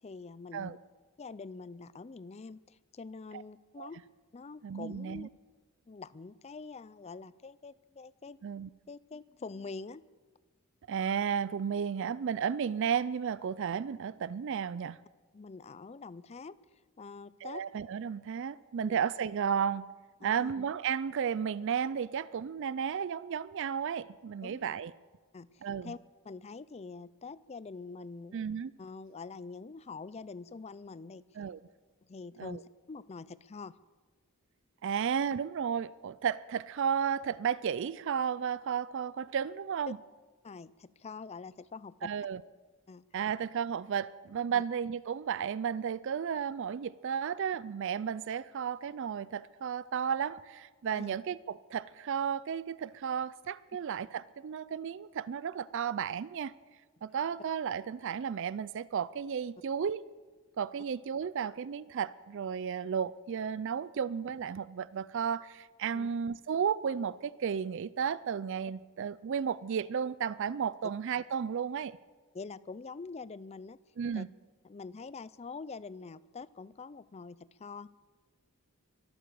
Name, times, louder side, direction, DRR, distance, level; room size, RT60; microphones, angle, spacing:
voice 1, 0.0-0.8 1.2-4.0 4.3-5.3 5.9-8.4 8.9-10.0 15.3-16.6 17.0-17.6 18.8-19.0 20.2-20.5 24.4-24.7 25.3-26.0 26.2-28.4 28.8-31.2 32.0-33.8 40.4-42.1 42.9-43.0 44.5-44.6 51.0-51.1 65.9-66.1 72.3-73.8 74.1-74.2 74.6-77.9, left 4 dB, 30° left, 0.4 m, -45 dB
voice 2, 4.6-5.3 8.4-8.7 10.9-15.0 17.4-19.9 20.2-24.9 25.6-25.9 28.3-28.7 31.4-31.6 32.4-32.6 34.8-40.0 42.0-42.4 43.1-56.5 57.0-60.1 60.6-72.0 74.0-74.3, right 7 dB, 55° right, 0.4 m, -33 dB
23.5 x 8.7 x 6.8 m
head